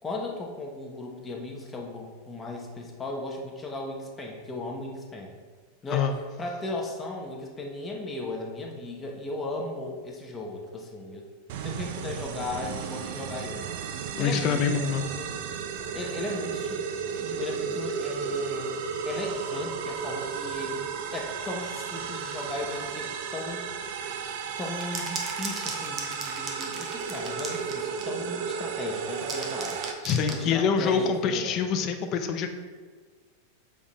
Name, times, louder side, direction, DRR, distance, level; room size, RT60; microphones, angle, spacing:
voice 1, 0.0-5.4 5.8-11.3 11.6-13.7 14.2-15.4 15.9-16.8 17.1-18.7 19.1-23.7 24.6-29.8 30.3-31.6, left 2 dB, 15° left, 0 dB, 0.9 m, -36 dB
sound 1, 11.5-29.9, right 6 dB, 55° right, 0.5 m, -34 dB
voice 2, 14.2-15.1 30.0-32.5, left 6 dB, 35° left, 6 dB, 0.6 m, -25 dB
sound 2, 24.6-28.2 28.9-30.5, right 4 dB, 25° right, 0.8 m, -37 dB
7.1 x 3.6 x 4.1 m, 1.5 s
supercardioid pair, 155°, 0 cm